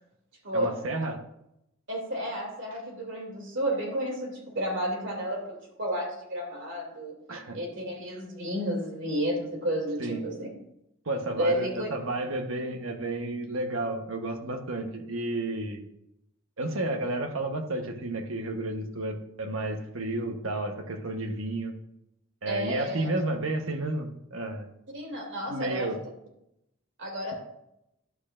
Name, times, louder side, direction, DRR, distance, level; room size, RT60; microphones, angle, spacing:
voice 1, 0.5-1.2 7.3-7.6 10.0-10.2 11.0-15.9 16.6-21.7 22.4-24.7 25.5-26.0, right 2 dB, 85° right, 5 dB, 1.1 m, -32 dB
voice 2, 1.9-7.1 7.5-10.5 11.3-11.9 22.5-23.1 24.9-25.9 27.0-27.3, equal, 65° right, 0 dB, 2.7 m, -31 dB
11.0 x 8.5 x 2.5 m, 0.82 s
head